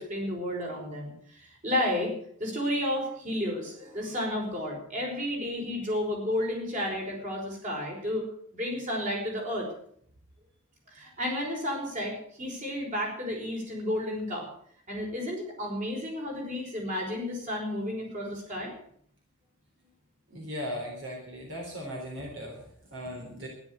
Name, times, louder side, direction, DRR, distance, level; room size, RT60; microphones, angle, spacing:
voice 1, 0.0-2.1 2.4-8.3 8.5-9.7 10.9-14.5 14.9-18.7, left 1 dB, 35° right, 0 dB, 5.4 m, -32 dB
voice 2, 20.3-23.5, equal, 70° right, 0 dB, 3.9 m, -38 dB
13.0 x 11.0 x 8.1 m, 0.65 s
head